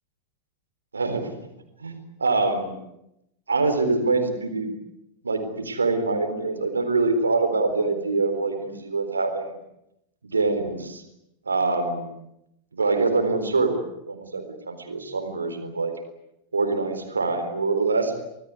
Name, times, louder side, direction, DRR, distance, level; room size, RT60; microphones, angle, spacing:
voice 1, 0.9-1.3 1.8-2.8 3.5-4.7 5.2-9.6 10.3-11.0 11.5-12.1 12.7-13.8 14.1-15.9 16.5-18.2, right 3 dB, 75° right, 8 dB, 4.0 m, -24 dB
26.0 x 19.0 x 9.7 m, 0.84 s
figure-of-eight pair, 90°, 0 cm